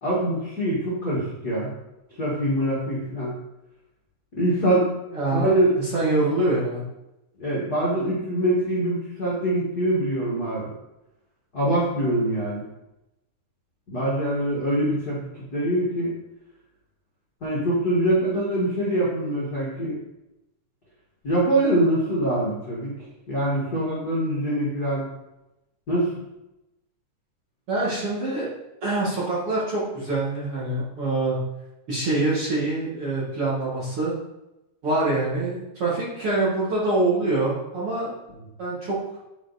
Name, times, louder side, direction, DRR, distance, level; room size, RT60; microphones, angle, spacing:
voice 1, 0.0-1.7 2.2-3.3 4.3-4.9 5.3-5.7 7.4-10.7 11.5-12.6 13.9-16.1 17.4-20.0 21.2-22.9 23.3-25.1 25.9-26.1, right 1 dB, 70° left, -6 dB, 0.9 m, -24 dB
voice 2, 5.1-6.8 27.7-28.5 28.8-31.4 31.9-34.1 34.8-38.1 38.6-39.0, right 2 dB, 50° right, -8 dB, 1.8 m, -25 dB
10.0 x 4.6 x 4.1 m, 0.95 s
omnidirectional pair, 5.1 m